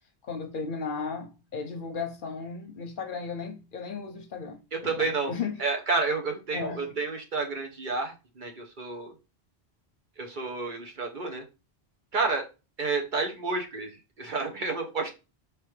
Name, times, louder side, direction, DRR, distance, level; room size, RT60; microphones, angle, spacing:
voice 1, 0.2-5.6 6.5-6.9, left 5 dB, 60° left, 0.7 m, -35 dB
voice 2, 4.7-5.3 5.6-9.1 10.2-11.4 12.1-12.5 12.8-15.1, right 3 dB, 55° right, 1.0 m, -30 dB
4.6 x 3.3 x 3.1 m
omnidirectional pair, 1.1 m